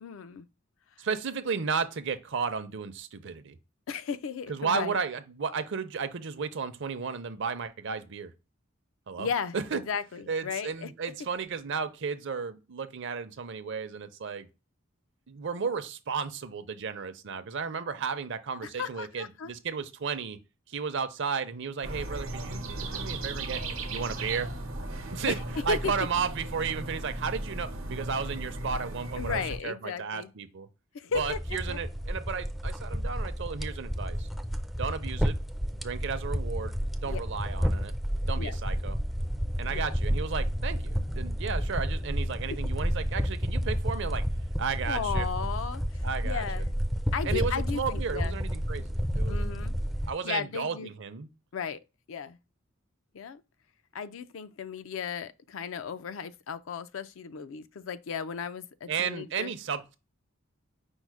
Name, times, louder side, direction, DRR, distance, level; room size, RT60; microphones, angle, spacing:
voice 1, 0.0-0.5 3.9-5.0 9.2-10.9 18.6-19.5 25.3-25.4 25.7-25.9 29.2-30.3 30.9-31.8 37.0-37.2 38.4-38.6 39.7-39.9 42.5-42.6 44.9-46.7 47.1-48.4 49.3-49.7 50.2-50.9 51.5-51.8 52.1-52.4 53.1-53.4 53.9-59.5, left 6 dB, 70° left, 0.4 m, -35 dB
voice 2, 1.0-3.6 4.5-8.3 9.1-9.3 9.5-9.8 10.3-14.5 15.3-20.4 20.7-23.6 23.9-24.5 25.1-30.7 31.1-34.3 34.7-35.3 35.8-37.9 38.3-39.0 39.6-44.2 44.6-45.3 46.0-46.6 47.2-49.7 50.1-51.3 58.9-60.0, right 5 dB, 60° right, 0.6 m, -33 dB
sound 1, 21.8-29.6, right 2 dB, 90° right, 0.9 m, -36 dB
sound 2, 31.1-50.1, equal, ahead, 0.3 m, -31 dB
5.4 x 2.0 x 4.6 m
head